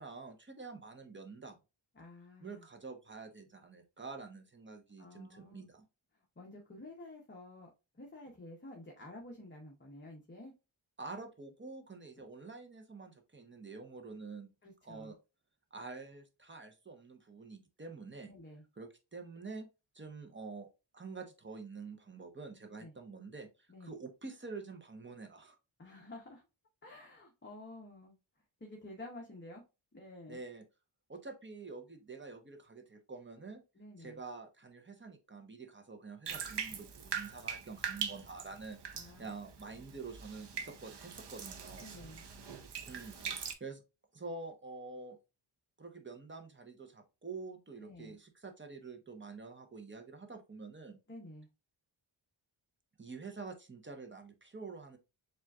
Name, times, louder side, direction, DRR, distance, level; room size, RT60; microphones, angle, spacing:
voice 1, 0.0-1.6 2.4-5.8 11.0-14.5 14.8-15.2 15.7-18.3 18.8-19.7 19.9-20.7 20.9-25.6 30.3-30.6 31.1-33.6 34.0-41.9 42.9-43.8 44.1-45.2 45.8-51.0 53.0-55.0, right 4 dB, 25° right, 0.7 m, -47 dB
voice 2, 2.0-2.6 5.0-5.6 6.4-7.7 7.9-10.5 14.6-15.1 18.2-18.6 22.8-22.9 23.7-23.9 25.8-26.4 26.8-28.2 28.6-29.6 29.9-30.4 33.8-34.2 38.9-39.3 41.8-42.2 43.1-43.4 47.8-48.2 51.1-51.5, left 1 dB, 25° left, 0.8 m, -51 dB
Bathtub (filling or washing), 36.3-43.5, right 7 dB, 60° right, 0.7 m, -42 dB
7.2 x 2.4 x 2.3 m
wide cardioid pair, 145°, 48 cm